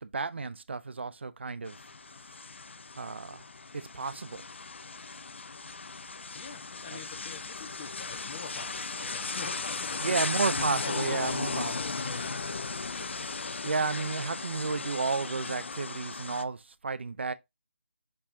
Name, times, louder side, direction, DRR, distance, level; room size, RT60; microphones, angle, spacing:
voice 1, 0.0-1.8 2.1-2.4 3.0-3.5 3.7-4.5 6.9-7.0 10.0-11.7 13.6-17.3, right 4 dB, 60° right, 0.7 m, -32 dB
sound 1, 1.7-16.4, left 4 dB, 60° left, 0.6 m, -36 dB
voice 2, 6.3-11.4 11.7-12.9, left 5 dB, 30° left, 1.5 m, -45 dB
7.4 x 4.7 x 2.7 m
figure-of-eight pair, 160°, 7 cm